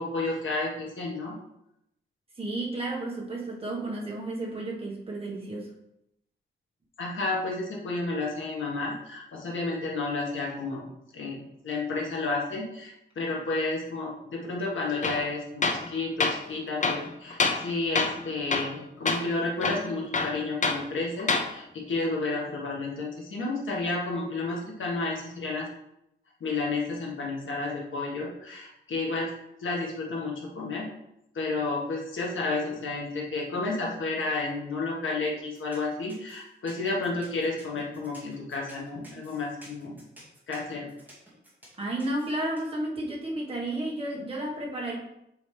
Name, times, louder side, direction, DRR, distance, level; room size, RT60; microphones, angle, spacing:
voice 1, 0.0-1.4 7.0-25.7 26.4-29.3 29.6-30.9 31.3-40.0 40.5-40.9, left 3 dB, 80° left, -2 dB, 1.8 m, -31 dB
voice 2, 2.4-5.7 41.8-45.0, right 1 dB, 30° right, -4 dB, 1.6 m, -32 dB
Tools, 15.0-15.2 15.6-15.9 16.2-16.4 16.8-17.7 18.0-18.2 18.5-18.8 19.1-19.2 19.6-20.8 21.2-21.5, left 4 dB, 40° left, 0.7 m, -26 dB
sound 1, 35.5-42.6, equal, 10° right, 2.3 m, -52 dB
8.0 x 5.0 x 3.4 m, 0.82 s
wide cardioid pair, 155°, 20 cm